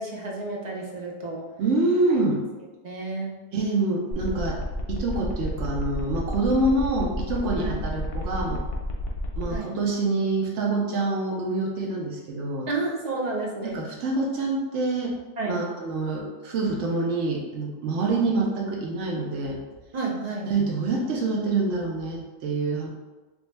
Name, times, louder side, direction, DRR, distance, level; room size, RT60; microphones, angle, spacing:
voice 1, 0.0-1.5 2.2-2.4 2.8-3.4 7.6-7.9 9.5-9.7 12.7-13.8 15.4-15.6 19.9-20.5, right 3 dB, 50° right, -2 dB, 0.5 m, -31 dB
voice 2, 1.6-2.4 3.5-4.6 4.9-8.6 9.4-12.7 13.6-15.2 15.5-19.6 20.5-22.9, right 2 dB, 85° right, -1 dB, 1.0 m, -26 dB
sound 1, 4.1-9.5, left 2 dB, 65° left, 0.8 m, -32 dB
3.1 x 2.6 x 3.2 m, 1.2 s
omnidirectional pair, 1.2 m